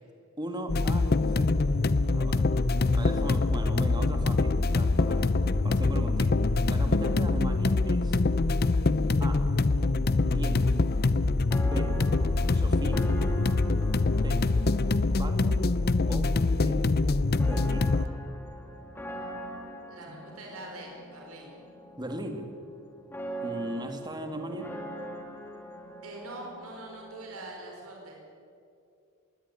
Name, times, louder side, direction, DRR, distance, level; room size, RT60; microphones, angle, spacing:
voice 1, 0.4-1.5 2.1-2.5 2.9-5.4 5.6-6.4 6.7-8.2 9.2-9.5 10.2-10.7 11.6-12.0 12.5-13.1 14.2-14.5 15.1-15.7 16.1-17.0 17.4-17.9 20.1-20.2 22.0-22.5 23.4-24.7, right 1 dB, 20° right, 5 dB, 2.2 m, -38 dB
sound 1, 0.7-18.1, left 3 dB, 45° left, 0.6 m, -24 dB
sound 2, 9.8-27.4, right 2 dB, 10° left, 2.4 m, -42 dB
voice 2, 19.9-21.6 24.3-24.5 26.0-28.2, right 2 dB, 80° right, 0 dB, 4.8 m, -43 dB
21.5 x 17.0 x 9.9 m, 2.5 s
head